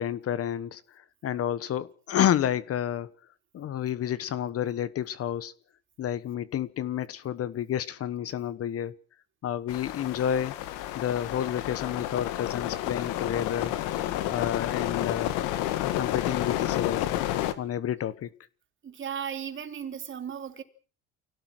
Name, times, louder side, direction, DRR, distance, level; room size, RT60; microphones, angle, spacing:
voice 1, 0.0-3.1 3.5-5.5 6.0-8.9 9.4-10.5 10.9-13.8 14.3-15.4 15.8-17.1 17.6-18.3, left 10 dB, 50° left, 17 dB, 1.3 m, -30 dB
sound 1, 9.7-17.5, left 13 dB, 75° left, 2.0 m, -30 dB
voice 2, 18.8-20.6, right 8 dB, 40° right, 6 dB, 3.9 m, -36 dB
24.5 x 17.0 x 6.3 m, 0.42 s
supercardioid pair, 85°, 31 cm